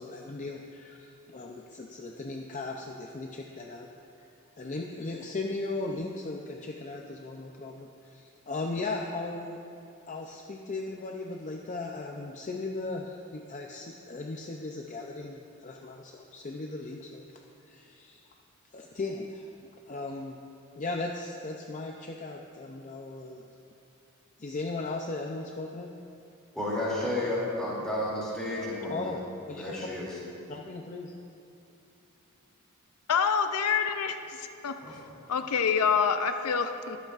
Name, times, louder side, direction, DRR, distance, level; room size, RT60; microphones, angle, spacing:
voice 1, 0.0-3.9 4.2-4.3 4.6-9.6 10.1-17.2 17.7-18.2 18.7-20.4 20.8-23.4 24.4-25.9 28.9-29.2 29.5-29.9 30.5-31.1, left 3 dB, 35° left, 1 dB, 0.5 m, -37 dB
voice 2, 26.5-29.1 29.6-30.1 34.8-34.9, left 1 dB, 5° left, -8 dB, 2.6 m, -32 dB
voice 3, 33.1-35.0 35.3-37.0, left 6 dB, 90° left, 8 dB, 0.5 m, -27 dB
20.5 x 7.8 x 2.5 m, 2.7 s
head